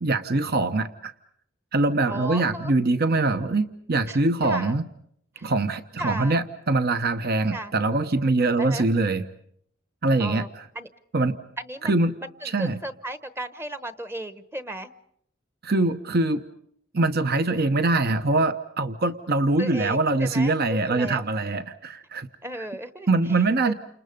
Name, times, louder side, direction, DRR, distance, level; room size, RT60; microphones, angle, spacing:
voice 1, 0.0-1.1 1.7-4.8 5.4-9.2 10.0-10.5 11.1-11.3 11.8-12.1 12.5-12.8 15.6-16.4 16.9-22.3 23.1-23.7, right 2 dB, 55° right, 9 dB, 1.1 m, -23 dB
voice 2, 2.1-2.7 4.1-4.7 5.4-5.5 6.0-6.4 7.5-7.7 8.6-8.8 10.2-10.5 10.7-10.9 11.6-14.9 19.6-21.2 22.4-23.7, right 1 dB, 10° right, 11 dB, 1.0 m, -35 dB
29.5 x 27.5 x 5.3 m, 0.68 s
head